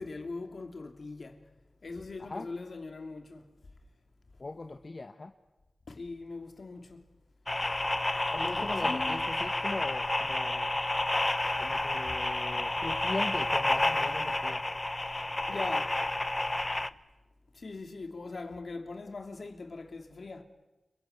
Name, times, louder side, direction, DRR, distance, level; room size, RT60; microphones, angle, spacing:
voice 1, 0.0-1.5 1.8-3.5 5.9-7.1 8.6-9.2 15.5-16.0 17.5-20.4, left 3 dB, 70° left, 3.1 m, -41 dB
voice 2, 4.4-5.3 8.3-10.7 11.6-14.6, left 3 dB, 50° left, 1.3 m, -39 dB
sound 1, 7.5-16.9, left 2 dB, 30° left, 1.0 m, -30 dB
29.5 x 21.5 x 8.1 m
cardioid pair, 55°, 0 cm